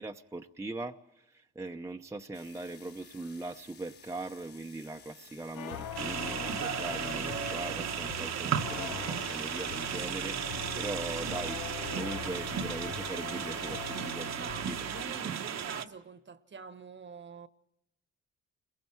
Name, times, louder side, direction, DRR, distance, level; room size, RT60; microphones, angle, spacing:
voice 1, 0.0-11.7 11.9-14.8, right 2 dB, 10° right, 0.8 m, -40 dB
sound 1, 2.3-14.1, left 6 dB, 50° left, 3.7 m, -56 dB
sound 2, 5.5-15.0, left 8 dB, 80° left, 1.3 m, -42 dB
sound 3, 6.0-15.9, right 8 dB, 60° right, 1.2 m, -35 dB
voice 2, 8.1-8.8 14.0-17.5, right 5 dB, 40° right, 1.2 m, -47 dB
30.0 x 22.0 x 4.6 m
cardioid pair, 90°, 30 cm